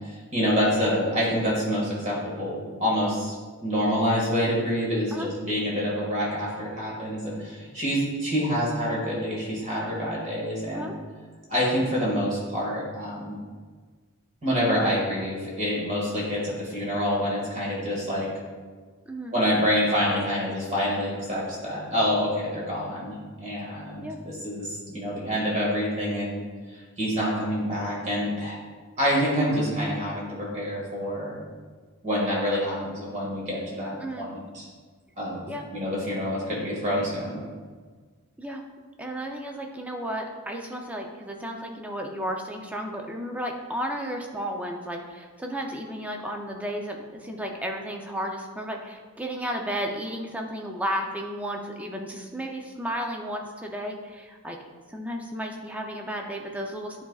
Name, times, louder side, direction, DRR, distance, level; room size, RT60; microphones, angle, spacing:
voice 1, 0.0-3.4 3.6-10.9 11.5-13.4 14.4-18.3 19.3-23.1 23.4-26.4 26.7-28.6 29.0-31.3 32.0-34.7 35.2-37.4, equal, 30° right, -5 dB, 1.8 m, -27 dB
voice 2, 19.1-19.4 24.0-24.2 34.0-34.3 35.5-35.7 38.4-38.7 39.0-54.6 54.9-57.0, equal, 5° right, 1 dB, 0.5 m, -33 dB
9.9 x 4.0 x 2.4 m, 1.5 s
head